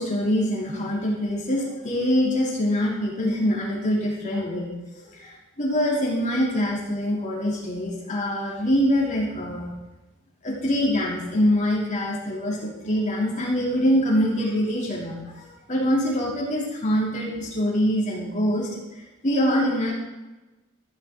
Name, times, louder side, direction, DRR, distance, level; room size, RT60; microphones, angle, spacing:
voice 1, 0.0-9.7 10.4-19.9, equal, 35° left, -3 dB, 3.1 m, -24 dB
14.5 x 11.0 x 3.9 m, 1.1 s
head